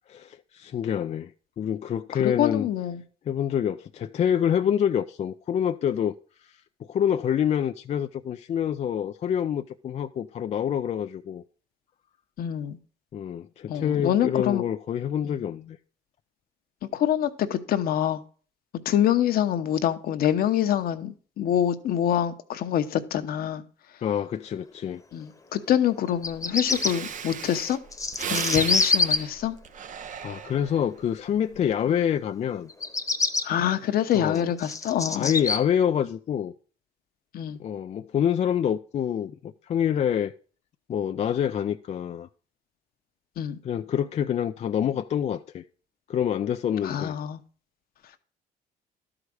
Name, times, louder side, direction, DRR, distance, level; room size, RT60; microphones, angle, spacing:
voice 1, 0.1-1.3 1.6-2.7 3.3-6.1 6.4-6.6 6.9-11.4 13.1-15.8 24.0-25.0 30.2-32.7 34.1-34.5 35.1-36.5 37.6-40.3 40.9-42.3 43.6-45.6 46.1-47.1, left 9 dB, 40° left, 0.4 m, -26 dB
voice 2, 2.2-3.0 12.4-12.8 13.7-14.6 15.2-15.4 16.9-18.2 18.8-23.6 25.1-27.8 28.3-29.6 31.9-32.0 33.4-35.3 37.3-37.6 43.4-43.6 46.8-47.4, left 10 dB, 60° left, 1.0 m, -25 dB
Bird vocalization bird call bird song, 26.1-26.9 27.7-29.2 32.7-33.4 34.1-35.6, left 3 dB, 20° left, 1.1 m, -25 dB
Breathing, 26.3-26.4 26.6-30.9 31.4-31.7, right 7 dB, 50° right, 0.8 m, -35 dB
12.0 x 4.9 x 6.3 m
cardioid pair, 110°, 17 cm